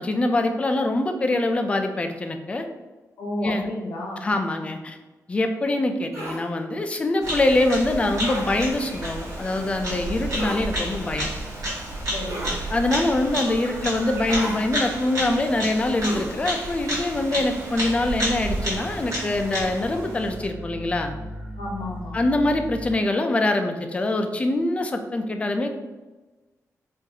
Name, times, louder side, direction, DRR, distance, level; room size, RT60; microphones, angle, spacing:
voice 1, 0.0-2.7 3.4-3.7 4.2-5.0 5.3-11.3 12.7-21.1 22.1-25.8, left 2 dB, 20° left, 6 dB, 0.3 m, -24 dB
voice 2, 3.2-4.3 12.1-12.6 21.5-22.2, left 1 dB, 85° left, -2 dB, 0.9 m, -31 dB
sound 1, 6.1-6.4 8.2-8.5 10.3-10.6 12.3-12.6 14.3-14.6 16.0-16.3, right 1 dB, 55° right, 1.2 m, -32 dB
Bird vocalization bird call bird song, 7.2-20.5, right 1 dB, 70° right, 1.3 m, -31 dB
sound 2, 17.8-22.9, equal, 25° right, 0.9 m, -38 dB
3.9 x 2.5 x 2.7 m, 1.2 s
wide cardioid pair, 145°, 6 cm